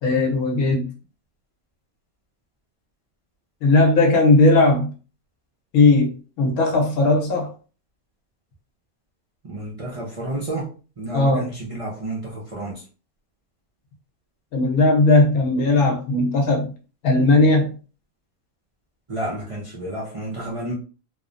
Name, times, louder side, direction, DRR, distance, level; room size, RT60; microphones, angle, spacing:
voice 1, 0.0-0.8 3.6-4.9 5.7-7.5 11.1-11.4 14.5-16.7 17.0-17.7, left 2 dB, 85° left, 1 dB, 1.3 m, -17 dB
voice 2, 9.4-10.7 11.0-12.8 19.1-20.7, right 1 dB, 45° right, -5 dB, 0.4 m, -30 dB
3.1 x 2.0 x 2.5 m, 0.36 s
omnidirectional pair, 1.5 m